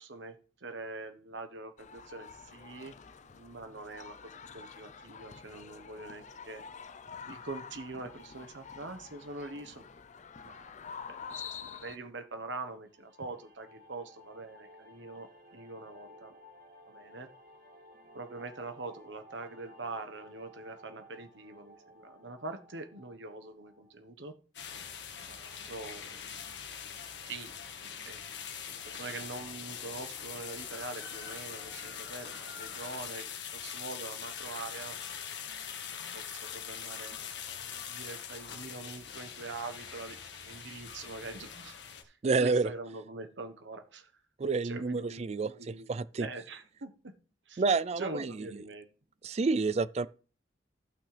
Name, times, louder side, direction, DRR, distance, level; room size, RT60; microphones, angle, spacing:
voice 1, 0.0-2.9 3.2-6.6 7.2-9.8 10.4-10.6 11.1-11.2 11.5-16.3 16.9-17.3 18.1-24.4 25.2-26.6 27.3-27.5 27.8-28.3 28.7-35.0 36.0-40.2 40.4-41.8 42.0-44.1 44.6-45.9 46.2-47.1 47.5-47.6 48.0-48.9, right 3 dB, 85° right, 1.2 m, -44 dB
sound 1, 1.8-12.0, left 6 dB, 40° left, 0.5 m, -47 dB
sound 2, 12.9-23.9, equal, 55° right, 2.0 m, -56 dB
sound 3, 24.5-42.0, left 8 dB, 75° left, 1.5 m, -43 dB
voice 2, 42.2-42.7 44.4-46.3 47.6-48.3 49.2-50.1, right 4 dB, 35° right, 0.4 m, -29 dB
15.0 x 6.1 x 3.3 m
head